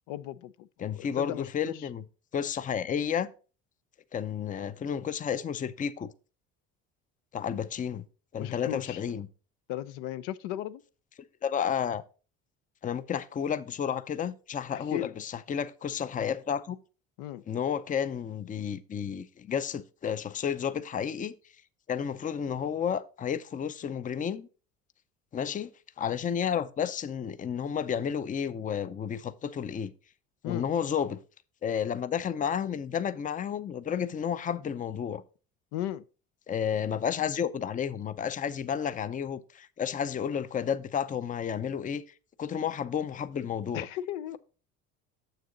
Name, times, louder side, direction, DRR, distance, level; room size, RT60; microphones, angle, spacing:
voice 1, 0.1-0.7 0.9-1.9 8.4-9.0 9.7-10.8 14.7-15.1 17.2-17.4 30.4-30.7 35.7-36.0 43.7-44.4, left 13 dB, 75° left, 0.5 m, -36 dB
voice 2, 0.8-2.0 2.3-3.3 4.1-6.1 7.3-8.0 8.3-9.3 11.4-12.0 12.8-16.8 17.5-21.3 21.9-24.5 25.3-25.7 26.0-29.9 30.4-31.2 31.6-35.2 36.5-42.0 42.4-43.9, left 8 dB, 25° left, 0.5 m, -31 dB
6.9 x 6.6 x 3.9 m
supercardioid pair, 85°, 32 cm